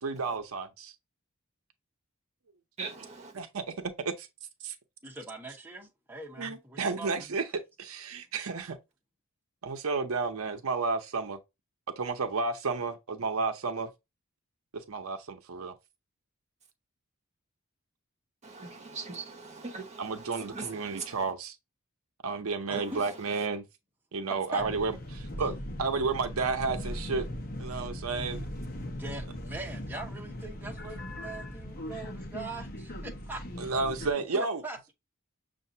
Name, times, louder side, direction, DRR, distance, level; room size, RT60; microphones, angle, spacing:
voice 1, 0.0-0.9 3.4-3.5 4.0-4.3 6.4-7.4 7.8-8.8 9.6-11.4 12.0-13.9 14.7-15.7 20.0-21.5 22.2-23.7 24.1-27.2 27.6-28.5 33.6-34.6, right 4 dB, 80° right, 0.7 m, -32 dB
voice 2, 2.8-3.3 18.4-21.3 22.7-23.5, right 4 dB, 35° right, 1.1 m, -41 dB
voice 3, 5.3-7.4 22.7-23.0 24.3-24.6 29.0-33.4 34.1-34.9, right 3 dB, 10° right, 1.2 m, -42 dB
sound 1, 24.6-34.1, left 1 dB, 45° left, 1.0 m, -39 dB
6.5 x 2.6 x 2.7 m
head